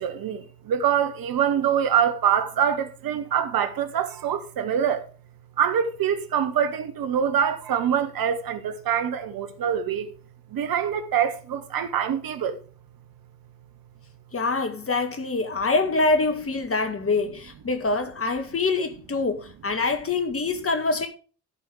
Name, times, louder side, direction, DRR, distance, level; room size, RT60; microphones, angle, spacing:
voice 1, 0.0-5.1 5.6-10.1 10.5-12.6, right 8 dB, 50° right, 1.3 m, -25 dB
voice 2, 14.3-21.1, left 3 dB, 30° left, 2.0 m, -25 dB
14.0 x 5.5 x 4.8 m
figure-of-eight pair, 50°, 44 cm